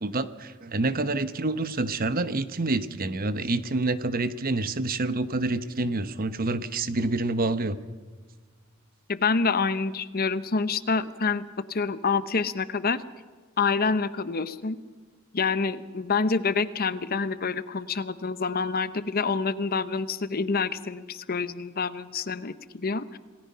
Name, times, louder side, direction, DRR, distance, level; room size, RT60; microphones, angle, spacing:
voice 1, 0.0-7.8, right 2 dB, 45° right, 13 dB, 1.0 m, -27 dB
voice 2, 9.1-13.0 13.6-14.8 15.3-23.2, left 4 dB, 45° left, 14 dB, 0.8 m, -27 dB
27.5 x 19.0 x 5.7 m, 1.4 s
head